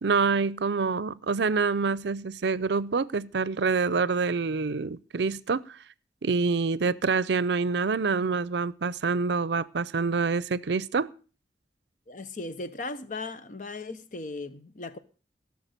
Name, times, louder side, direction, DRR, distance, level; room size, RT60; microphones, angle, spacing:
voice 1, 0.0-5.8 6.2-11.1, right 4 dB, 75° right, 0.5 m, -26 dB
voice 2, 12.1-15.0, left 2 dB, 45° left, 1.0 m, -37 dB
17.0 x 6.7 x 6.6 m
head